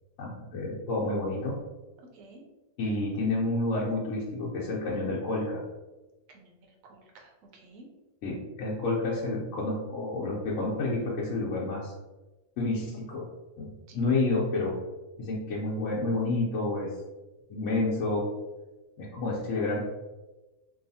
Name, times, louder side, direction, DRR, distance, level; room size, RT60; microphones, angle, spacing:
voice 1, 0.2-1.5 2.8-5.6 8.2-11.9 12.6-13.3 13.6-14.7 15.2-16.9 17.5-18.3 19.0-19.8, left 2 dB, 70° left, -6 dB, 0.9 m, -29 dB
voice 2, 2.1-2.4 6.3-7.9 13.9-14.0, right 2 dB, 75° right, 1 dB, 1.0 m, -53 dB
2.7 x 2.3 x 2.6 m, 1.1 s
omnidirectional pair, 1.4 m